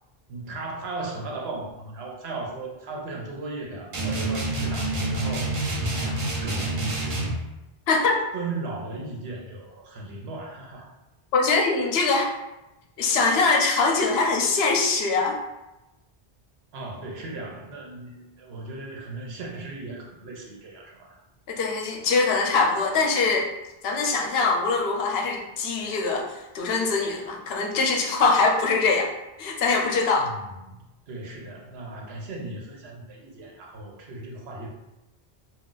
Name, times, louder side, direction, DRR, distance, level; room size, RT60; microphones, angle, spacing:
voice 1, 0.3-5.5 5.9-6.9 8.3-10.9 16.7-21.2 30.2-34.7, right 3 dB, 80° right, -1 dB, 0.9 m, -37 dB
sound 1, 3.9-7.4, right 2 dB, 45° right, 0.5 m, -27 dB
voice 2, 11.3-12.3 13.0-15.4 21.5-23.5 23.8-29.1 29.4-30.3, left 4 dB, 80° left, 1 dB, 0.8 m, -23 dB
2.4 x 2.3 x 3.7 m, 0.97 s
omnidirectional pair, 1.0 m